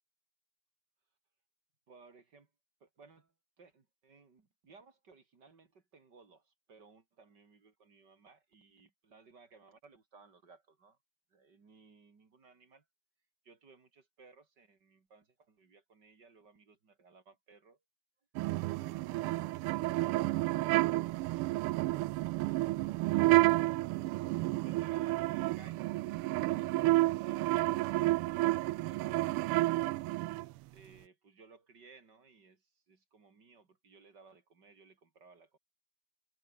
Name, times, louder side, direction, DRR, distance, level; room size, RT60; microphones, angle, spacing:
voice 1, 1.9-2.5 2.8-11.0 11.3-12.8 13.4-17.8 23.0-23.6 24.6-26.0 26.5-29.4 29.9-35.6, right 4 dB, 50° right, 3.3 m, -61 dB
sound 1, 18.4-30.5, right 19 dB, 85° right, 1.5 m, -30 dB
omnidirectional pair, 2.4 m